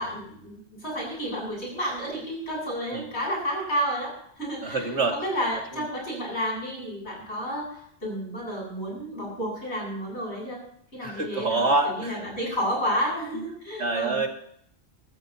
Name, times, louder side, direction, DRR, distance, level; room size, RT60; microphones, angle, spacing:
voice 1, 0.0-10.6 10.9-14.2, equal, 70° left, -2 dB, 8.5 m, -31 dB
voice 2, 4.6-5.2 5.7-5.9 11.0-12.3 13.3-13.4 13.8-14.3, right 3 dB, 75° right, 2 dB, 2.5 m, -26 dB
25.0 x 13.5 x 2.9 m, 0.67 s
omnidirectional pair, 1.2 m